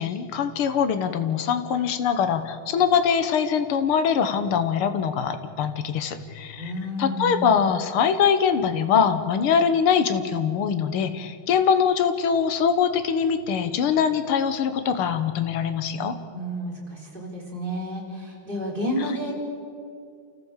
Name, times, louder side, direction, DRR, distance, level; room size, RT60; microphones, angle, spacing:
voice 1, 0.0-6.7 7.0-16.1, left 7 dB, 85° left, 9 dB, 2.0 m, -23 dB
voice 2, 6.6-7.6 16.3-19.3, equal, 20° right, -2 dB, 4.3 m, -31 dB
28.5 x 14.5 x 7.3 m, 2.3 s
omnidirectional pair, 2.3 m